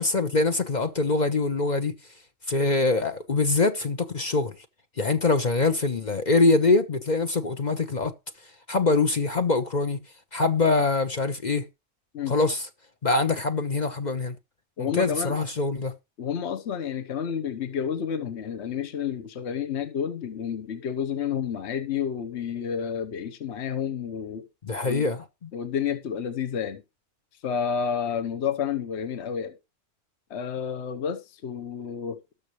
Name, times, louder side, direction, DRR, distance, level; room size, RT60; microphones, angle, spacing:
voice 1, 0.0-2.0 2.5-4.6 5.0-8.1 8.7-10.0 10.3-11.7 12.3-12.7 13.0-14.4 14.8-15.9 24.6-25.5, left 3 dB, 40° left, 0.8 m, -24 dB
voice 2, 14.8-15.3 16.2-24.5 24.9-25.0 25.5-26.8 27.4-29.6 30.3-32.2, left 7 dB, 65° left, 1.2 m, -30 dB
19.0 x 6.5 x 3.1 m
omnidirectional pair, 1.3 m